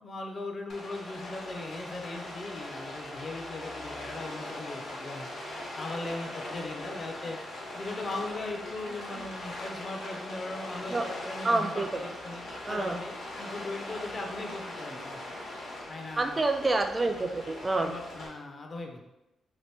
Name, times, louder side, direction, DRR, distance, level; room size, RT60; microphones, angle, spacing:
voice 1, 0.0-5.3 5.8-7.4 7.7-15.2 15.9-16.4 17.8-19.0, left 2 dB, 40° left, 3 dB, 0.5 m, -39 dB
Rain, 0.7-18.3, left 1 dB, 75° left, 1.0 m, -40 dB
voice 2, 11.4-11.9 12.7-13.0 16.2-18.0, right 2 dB, 25° right, 6 dB, 0.3 m, -27 dB
2.9 x 2.5 x 3.3 m, 0.92 s
cardioid pair, 95°, 0 cm